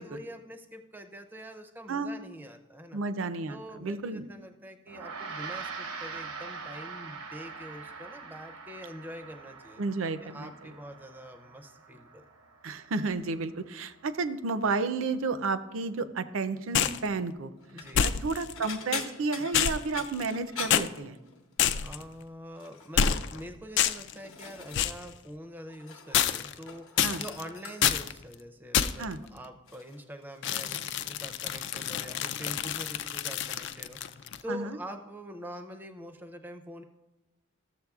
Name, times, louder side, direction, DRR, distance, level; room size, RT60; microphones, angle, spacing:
voice 1, 0.0-3.0 3.5-9.8 10.2-12.2 17.7-18.1 21.8-36.8, equal, 10° right, 6 dB, 0.4 m, -44 dB
voice 2, 2.9-4.2 9.8-10.5 12.6-17.5 18.0-21.2 27.0-27.2 29.0-29.2 34.5-34.8, right 3 dB, 70° right, 12 dB, 0.5 m, -32 dB
Gong, 4.9-14.5, right 5 dB, 90° right, 0.8 m, -44 dB
sound 1, 16.7-17.1 17.9-18.5 19.5-20.4 20.7-20.9 21.6-22.0 23.0-23.4 23.8-24.1 24.7-25.0 26.1-26.6 27.0-27.4 27.8-28.1 28.7-29.1 30.4-34.4, left 9 dB, 55° left, 0.3 m, -28 dB
sound 2, 17.6-18.0 18.5-21.6 21.9-22.2 22.6-23.1 23.7-25.2 25.4-26.3 26.6-28.1 29.0-29.3 29.7-31.7 32.0-32.5 32.9-33.1 34.4-34.5, left 6 dB, 75° left, 0.9 m, -43 dB
14.0 x 7.2 x 2.3 m, 1.0 s
head